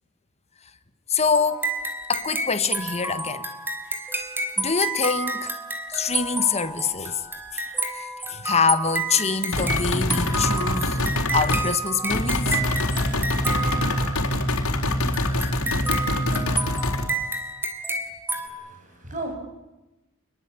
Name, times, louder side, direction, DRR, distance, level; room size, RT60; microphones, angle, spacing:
voice 1, 1.1-1.7 2.1-3.5 4.6-5.5 5.9-7.2 7.5-7.6 7.9-11.0 11.3-12.6, left 5 dB, 30° left, 1.7 m, -25 dB
sound 1, 1.3-14.4 15.1-18.5, right 2 dB, 10° right, 3.5 m, -30 dB
sound 2, 9.5-11.7 12.1-17.1, left 1 dB, 90° left, 4.2 m, -24 dB
voice 2, 18.3-19.3, right 2 dB, 40° right, 7.8 m, -36 dB
29.0 x 21.5 x 8.7 m
head